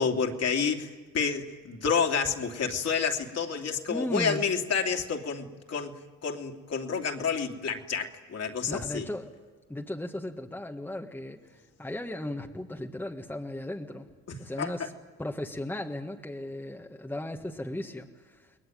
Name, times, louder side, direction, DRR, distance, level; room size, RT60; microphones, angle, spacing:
voice 1, 0.0-6.0 6.2-9.0 14.6-14.7, left 6 dB, 50° left, 3 dB, 3.0 m, -29 dB
voice 2, 3.9-4.4 8.7-9.3 9.7-14.1 14.4-14.9 15.2-18.5, left 1 dB, 5° left, 2 dB, 1.6 m, -36 dB
30.0 x 21.0 x 9.3 m, 1.3 s
cardioid pair, 120°, 33 cm